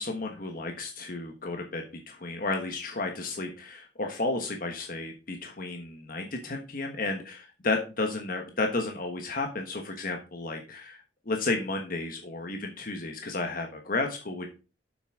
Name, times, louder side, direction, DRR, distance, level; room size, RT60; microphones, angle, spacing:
voice 1, 0.0-14.5, left 3 dB, 50° left, 3 dB, 1.4 m, -32 dB
8.1 x 6.1 x 4.9 m, 0.32 s
head